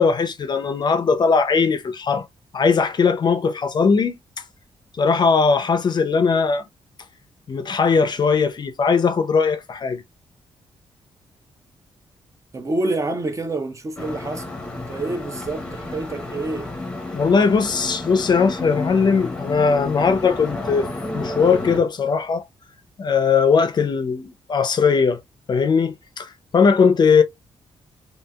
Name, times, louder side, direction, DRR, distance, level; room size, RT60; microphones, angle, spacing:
voice 1, 0.0-2.3 2.5-4.2 4.9-6.6 7.5-10.0 17.1-20.9 21.1-22.5 23.0-25.2 25.5-27.2, left 5 dB, 45° left, 0.5 m, -19 dB
voice 2, 12.5-16.7, right 2 dB, 30° right, 0.6 m, -28 dB
sound 1, 14.0-21.8, left 2 dB, 10° left, 0.8 m, -31 dB
2.7 x 2.7 x 2.2 m
cardioid pair, 90°, 11 cm